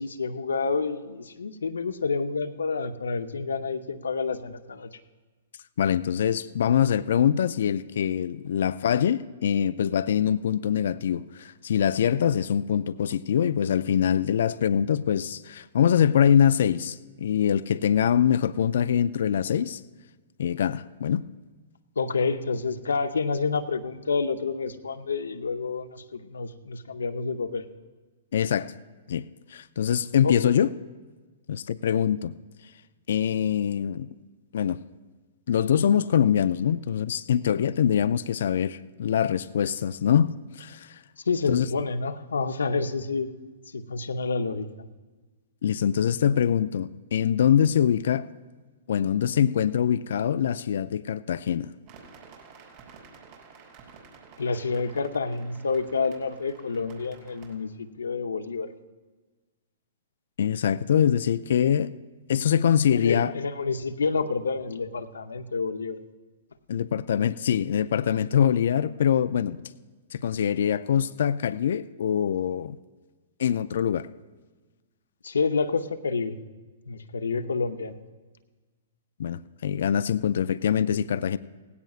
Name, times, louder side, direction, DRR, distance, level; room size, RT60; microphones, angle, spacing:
voice 1, 0.0-5.0 22.0-27.7 30.2-30.6 41.2-43.3 43.7-44.9 54.4-58.7 62.9-66.0 75.2-76.4 76.9-78.0, left 4 dB, 85° left, 0.8 m, -29 dB
voice 2, 5.8-19.8 20.4-21.2 28.3-28.7 29.1-29.2 29.5-30.7 31.5-32.3 33.1-34.1 34.5-34.8 35.5-41.0 41.5-41.7 45.6-48.3 48.9-51.7 60.4-61.9 62.3-63.3 66.7-69.6 70.1-72.8 73.4-74.1 79.2-81.4, left 8 dB, 70° left, 0.4 m, -24 dB
sound 1, 51.9-57.5, right 5 dB, 45° right, 5.2 m, -51 dB
18.5 x 16.5 x 2.4 m
hypercardioid pair, 125°, 0 cm